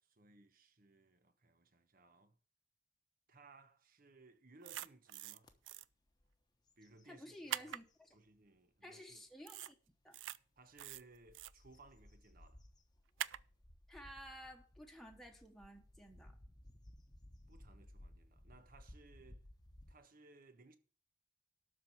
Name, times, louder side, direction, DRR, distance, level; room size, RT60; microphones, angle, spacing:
voice 1, 0.0-2.4 3.3-5.5 6.8-7.7 8.1-9.2 10.6-12.6 17.5-19.4 19.9-20.8, right 3 dB, 50° right, 1.1 m, -63 dB
sound 1, 4.6-5.4 5.7-5.8 7.5-7.8 9.5-9.7 10.1-10.4 10.8-11.5 13.2-13.4, right 12 dB, 85° right, 0.4 m, -43 dB
sound 2, 5.4-5.6 6.1-6.3 6.7-8.2 8.8-8.9 10.6-19.9, left 1 dB, 20° left, 1.1 m, -60 dB
voice 2, 7.1-7.8 8.8-9.7 10.0-10.2 13.9-16.4, equal, ahead, 1.3 m, -53 dB
12.5 x 4.5 x 7.9 m
head